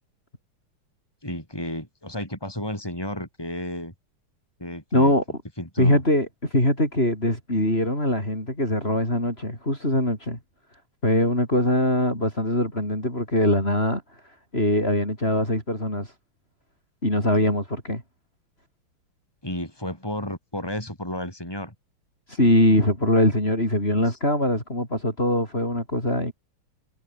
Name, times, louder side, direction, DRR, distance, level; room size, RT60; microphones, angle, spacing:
voice 1, 1.2-3.9 4.6-5.1 5.6-6.0 19.4-21.7 24.1-24.2, left 1 dB, 10° left, 7.8 m, -32 dB
voice 2, 4.9-5.2 5.8-10.4 11.0-14.0 14.5-16.1 17.0-18.0 22.3-26.3, left 1 dB, 25° left, 8.4 m, -22 dB
omnidirectional pair, 2.3 m